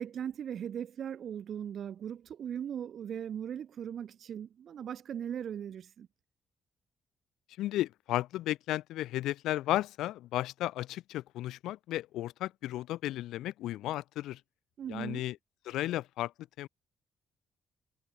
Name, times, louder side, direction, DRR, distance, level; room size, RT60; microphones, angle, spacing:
voice 1, 0.0-6.1 14.8-15.2, right 9 dB, 60° right, 1.3 m, -39 dB
voice 2, 7.6-14.4 14.9-15.4 15.7-16.3 16.6-16.7, left 15 dB, 90° left, 0.5 m, -34 dB
cardioid pair, 90°, 0 cm